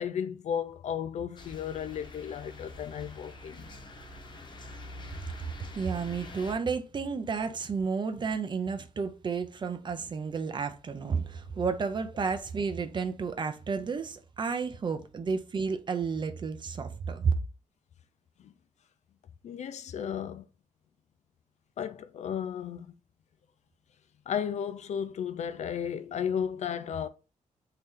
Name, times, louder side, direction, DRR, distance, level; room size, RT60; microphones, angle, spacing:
voice 1, 0.0-3.7 15.3-15.4 18.4-18.5 19.4-20.4 21.8-22.9 24.3-27.1, left 8 dB, 60° left, 0.4 m, -34 dB
sound 1, 1.4-6.5, left 2 dB, 35° left, 0.7 m, -45 dB
voice 2, 5.7-17.3, right 5 dB, 35° right, 0.5 m, -31 dB
3.1 x 2.8 x 3.7 m
wide cardioid pair, 140°, 13 cm